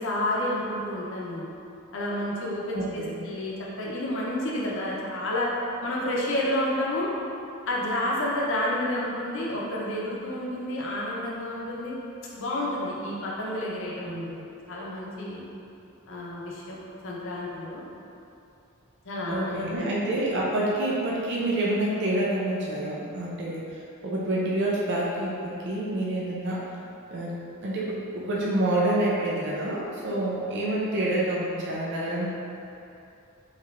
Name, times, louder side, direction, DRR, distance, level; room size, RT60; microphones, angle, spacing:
voice 1, 0.0-1.5 1.9-5.5 5.8-7.1 7.7-12.0 12.3-14.3 14.7-15.6 16.1-16.8 17.0-17.8 19.0-20.2, left 1 dB, 60° left, -4 dB, 0.7 m, -30 dB
voice 2, 2.7-3.2 14.1-14.3 19.3-26.6 27.1-27.3 27.6-32.3, right 1 dB, 55° right, -5 dB, 0.5 m, -28 dB
4.5 x 2.9 x 2.5 m, 2.7 s
head